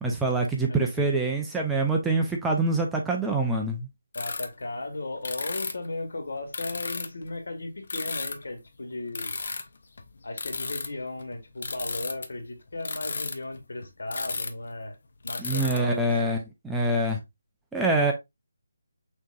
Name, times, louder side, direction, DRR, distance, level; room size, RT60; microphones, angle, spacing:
voice 1, 0.0-3.9 15.4-17.2 17.7-18.1, right 2 dB, 5° right, 0.4 m, -25 dB
voice 2, 0.7-1.3 4.1-9.4 10.2-15.0 15.2-16.4, left 2 dB, 70° left, 1.4 m, -36 dB
sound 1, 4.1-4.5 4.7-4.8 5.2-5.9 6.5-7.3 7.9-8.5 8.9-12.3 12.7-14.6 14.9-15.0 15.2-15.8, left 4 dB, 50° left, 0.6 m, -33 dB
6.2 x 2.9 x 2.3 m
hypercardioid pair, 175°, 0 cm